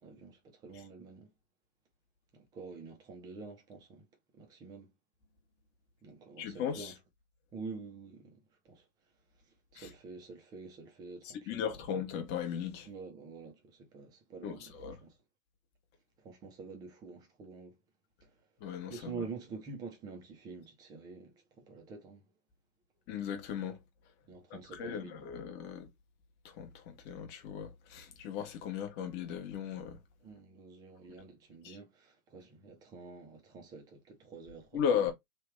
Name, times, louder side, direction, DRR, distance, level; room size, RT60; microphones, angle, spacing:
voice 1, 0.0-1.3 2.3-4.1 4.3-4.9 6.0-7.0 7.5-8.8 9.7-11.6 12.8-15.1 16.2-17.7 18.2-18.3 18.9-22.2 24.2-25.3 30.2-35.1, right 4 dB, 10° right, 0.4 m, -47 dB
voice 2, 6.4-6.9 9.8-9.9 11.2-12.9 14.4-15.0 18.6-19.2 23.1-23.8 24.5-25.9 26.4-30.0 31.6-31.8 34.7-35.1, left 8 dB, 25° left, 0.8 m, -37 dB
3.3 x 2.3 x 3.1 m
hypercardioid pair, 130°, 42 cm